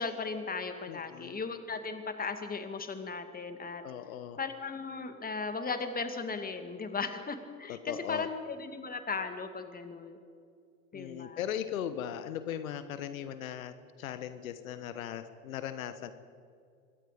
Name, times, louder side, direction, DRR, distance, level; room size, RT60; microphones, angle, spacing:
voice 1, 0.0-3.8 4.4-10.2 10.9-11.4, left 4 dB, 20° left, 8 dB, 2.5 m, -37 dB
voice 2, 0.9-1.4 3.8-4.4 7.7-8.3 10.9-16.1, left 10 dB, 75° left, 12 dB, 1.3 m, -38 dB
25.0 x 22.0 x 5.2 m, 2.4 s
hypercardioid pair, 75°, 42 cm